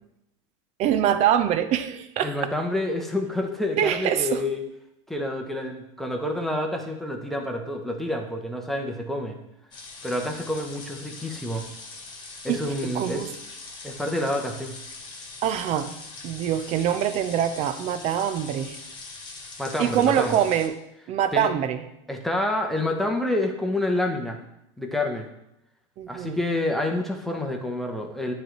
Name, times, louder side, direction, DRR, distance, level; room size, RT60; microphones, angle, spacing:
voice 1, 0.8-2.5 3.8-4.4 12.5-12.6 12.9-13.3 15.4-15.9 16.2-18.8 19.8-20.7 21.1-21.8 26.0-26.4, right 10 dB, 45° right, 11 dB, 0.6 m, -24 dB
voice 2, 2.2-4.6 5.1-9.4 10.0-11.7 12.4-13.3 13.8-14.8 19.6-20.4 21.3-21.5 22.1-24.4 24.8-25.3 26.1-28.3, left 1 dB, ahead, 2 dB, 1.0 m, -28 dB
sound 1, 9.7-20.7, left 3 dB, 30° left, 1.7 m, -42 dB
9.1 x 3.4 x 4.5 m, 0.83 s
supercardioid pair, 115°, 15 cm